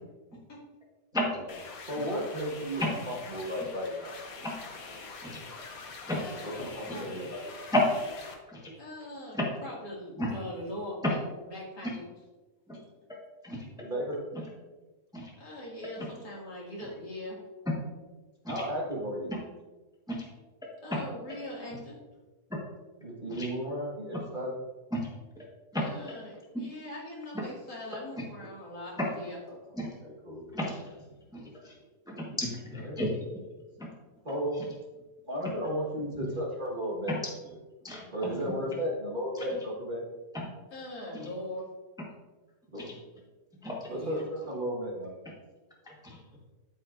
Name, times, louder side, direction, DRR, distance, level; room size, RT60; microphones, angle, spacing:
sound 1, 1.5-8.3, left 4 dB, 65° left, 1.4 m, -45 dB
voice 1, 1.9-4.2 6.6-7.5 13.8-14.2 18.5-19.3 23.0-24.5 30.0-30.7 32.3-32.4 32.8-33.0 34.2-34.6 35.3-37.1 38.1-40.0 42.7-42.9 43.9-45.1, equal, 30° right, -4 dB, 1.5 m, -34 dB
voice 2, 6.1-7.3 8.7-11.2 11.5-12.1 15.4-17.4 20.8-22.0 25.7-29.4 40.7-41.6 43.9-44.2, left 1 dB, 90° left, -5 dB, 2.8 m, -41 dB
voice 3, 30.5-30.9 31.3-31.7 32.1-33.3 33.8-33.9 35.4-35.5 36.2-36.3 37.1-37.2 37.8-38.4 39.3-39.4 40.3-40.5 41.2-41.3 42.8-42.9 43.6-43.9 45.2-45.3 45.9-46.2, left 1 dB, 5° right, -2 dB, 1.0 m, -32 dB
12.0 x 5.2 x 2.5 m, 1.2 s
omnidirectional pair, 1.7 m